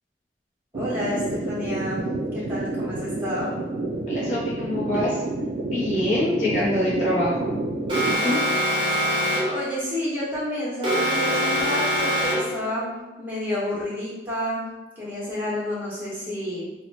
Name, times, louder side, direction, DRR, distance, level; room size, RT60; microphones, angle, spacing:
voice 1, 0.7-2.0 2.3-3.6 9.4-12.9 13.2-14.6 15.0-16.6, left 1 dB, 10° right, -8 dB, 1.1 m, -29 dB
sound 1, 0.7-8.2, right 2 dB, 60° right, 0.3 m, -29 dB
voice 2, 4.1-5.2 5.6-7.5 8.2-8.4, left 1 dB, 40° left, -7 dB, 0.6 m, -25 dB
Alarm, 7.9-9.6 10.8-12.6, equal, 25° right, 0.8 m, -23 dB
2.8 x 2.1 x 4.1 m, 1.1 s
head